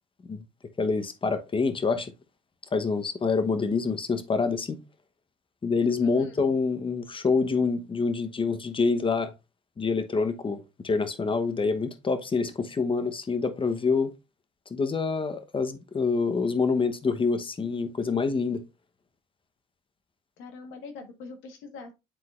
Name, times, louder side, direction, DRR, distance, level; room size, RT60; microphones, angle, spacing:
voice 1, 0.8-2.1 2.7-4.8 5.6-9.3 9.8-14.1 14.7-18.6, left 4 dB, 25° left, 1.0 m, -26 dB
voice 2, 6.0-6.4 20.4-21.9, left 3 dB, 70° left, 1.5 m, -41 dB
10.0 x 3.9 x 2.5 m
hypercardioid pair, 70°, 21 cm